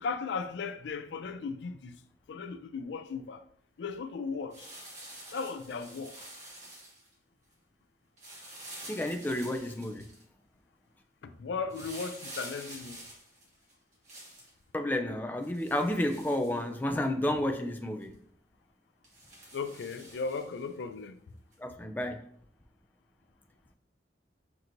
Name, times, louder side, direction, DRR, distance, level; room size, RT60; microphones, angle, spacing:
voice 1, 0.0-1.9 2.3-3.4 3.8-4.7 5.3-6.1 11.2-13.0 19.5-21.2, left 5 dB, 80° left, 0.4 m, -36 dB
sound 1, 4.5-7.1 8.2-10.2 11.7-14.5 15.4-17.0 17.5-17.6 18.0-18.1 19.0-20.7 21.5-21.6, right 1 dB, 40° right, 1.4 m, -48 dB
voice 2, 8.9-10.0 14.7-18.1 21.6-22.2, left 1 dB, 10° left, 0.4 m, -31 dB
5.8 x 2.9 x 2.6 m
head